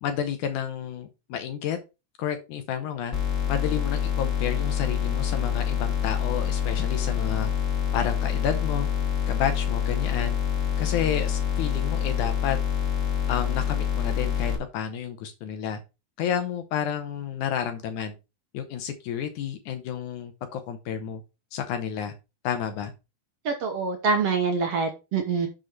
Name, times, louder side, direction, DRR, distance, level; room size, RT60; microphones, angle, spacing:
voice 1, 0.0-1.8 2.2-3.2 3.5-7.5 7.9-8.9 9.3-10.4 10.8-12.6 13.3-15.8 16.2-18.2 18.5-21.2 21.5-22.1 22.4-22.9, left 8 dB, 75° left, 8 dB, 2.0 m, -30 dB
sound 1, 3.1-14.6, left 8 dB, 25° left, 1.9 m, -26 dB
voice 2, 23.4-25.5, right 5 dB, 60° right, 4 dB, 1.6 m, -25 dB
6.5 x 6.2 x 4.4 m, 0.27 s
omnidirectional pair, 4.1 m